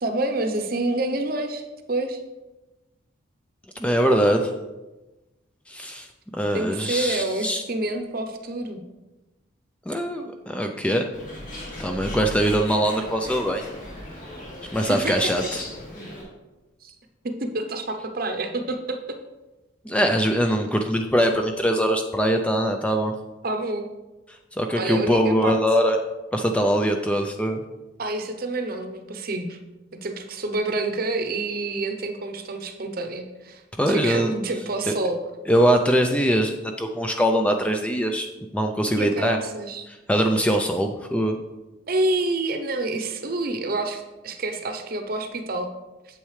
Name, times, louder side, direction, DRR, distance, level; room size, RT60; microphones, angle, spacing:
voice 1, 0.0-2.2 6.5-8.8 14.9-15.3 16.8-16.9 17.2-19.2 23.4-23.9 24.8-25.6 28.0-29.6 30.0-35.2 38.9-39.9 41.9-45.7, right 2 dB, 45° right, 6 dB, 0.7 m, -28 dB
voice 2, 3.8-4.5 5.7-6.1 6.3-7.6 9.9-11.0 11.8-13.6 14.7-15.6 19.9-23.1 24.6-26.0 26.3-27.6 33.8-34.3 34.9-35.0 35.5-38.3 38.5-39.4 39.9-41.4, equal, 5° left, 4 dB, 0.4 m, -22 dB
Bird, 11.1-16.2, left 1 dB, 40° left, 2.2 m, -37 dB
8.7 x 7.4 x 3.2 m, 1.1 s
head